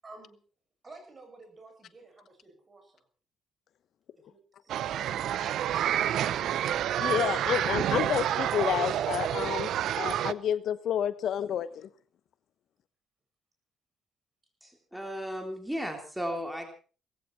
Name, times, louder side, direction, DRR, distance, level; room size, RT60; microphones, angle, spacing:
voice 1, 0.0-0.4 0.8-3.0 4.1-6.6 9.9-10.1, right 3 dB, 30° right, 4 dB, 8.0 m, -52 dB
sound 1, 4.7-10.3, right 11 dB, 75° right, 0.8 m, -29 dB
voice 2, 7.0-9.7 10.0-11.9, left 10 dB, 70° left, 14 dB, 1.0 m, -30 dB
voice 3, 14.6-16.7, equal, 5° right, 4 dB, 3.4 m, -35 dB
18.5 x 15.5 x 4.6 m, 0.37 s
cardioid pair, 90°, 0 cm